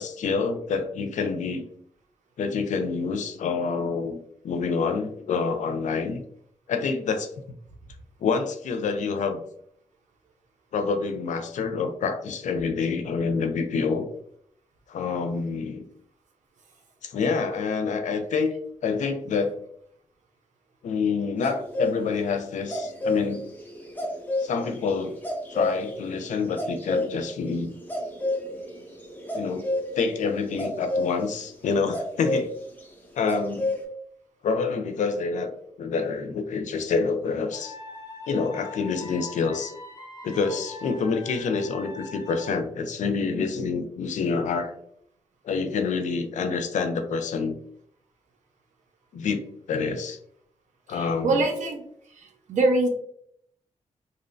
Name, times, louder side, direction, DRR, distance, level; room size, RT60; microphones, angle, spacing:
voice 1, 0.0-1.7 2.4-4.2 4.4-6.2 6.7-7.3 8.2-9.4 10.7-14.1 14.9-15.9 17.0-18.5 18.8-19.6 20.8-23.4 24.4-25.2 25.5-27.7 29.3-29.7 30.0-32.5 33.1-33.7 34.4-37.8 38.3-39.7 40.2-44.7 45.4-47.6 49.1-49.4 49.7-50.2 50.9-51.5, left 5 dB, 85° left, 8 dB, 0.4 m, -27 dB
sound 1, 21.4-21.9 22.4-31.2 31.9-32.5 32.8-32.9 33.3-33.8, left 1 dB, 15° left, 0.6 m, -30 dB
sound 2, 37.5-42.5, left 3 dB, 35° left, 0.9 m, -42 dB
voice 2, 50.9-51.8 52.2-52.9, right 2 dB, 80° right, 2 dB, 0.6 m, -24 dB
2.7 x 2.1 x 2.5 m, 0.68 s
wide cardioid pair, 110°, 12 cm